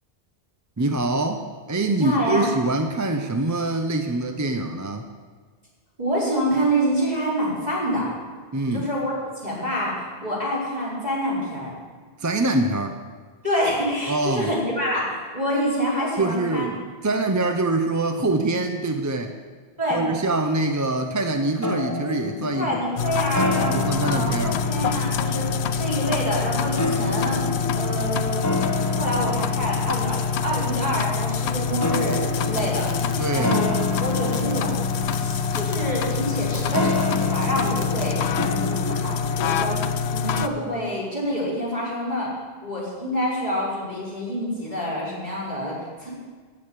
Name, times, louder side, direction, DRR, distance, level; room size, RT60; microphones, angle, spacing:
voice 1, 0.8-5.1 8.5-8.9 12.2-13.0 14.1-14.5 16.2-19.3 19.9-22.7 23.7-24.6 33.2-33.6, right 2 dB, 20° right, 5 dB, 0.5 m, -24 dB
voice 2, 2.0-2.5 6.0-8.1 8.7-11.7 13.4-16.7 19.8-20.0 22.5-27.4 27.7-28.4 28.9-33.7 34.0-34.9 35.2-42.3 42.6-46.1, equal, 40° right, -8 dB, 5.0 m, -27 dB
sound 1, 21.6-40.1, left 3 dB, 15° left, 0.9 m, -30 dB
sound 2, 23.0-40.5, left 6 dB, 80° left, 0.9 m, -26 dB
sound 3, 32.0-38.1, left 4 dB, 45° left, 0.9 m, -42 dB
14.5 x 9.4 x 4.8 m, 1.5 s
omnidirectional pair, 1.1 m